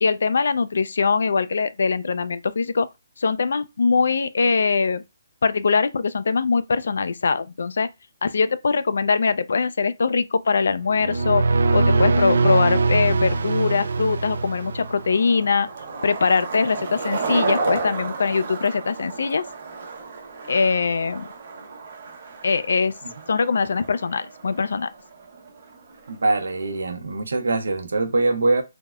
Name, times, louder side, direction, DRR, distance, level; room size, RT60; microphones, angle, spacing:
voice 1, 0.0-2.9 3.2-5.0 5.4-7.9 8.2-11.4 11.7-15.7 16.0-19.4 20.5-21.3 22.4-22.9 23.3-24.9, left 4 dB, 70° left, 0.3 m, -22 dB
sound 1, 10.9-15.2, right 3 dB, 65° right, 0.3 m, -21 dB
Skateboard, 12.8-26.8, right 4 dB, 50° right, 0.8 m, -34 dB
voice 2, 26.1-28.6, right 2 dB, 85° right, 0.7 m, -23 dB
3.3 x 2.1 x 2.3 m
hypercardioid pair, 170°, 0 cm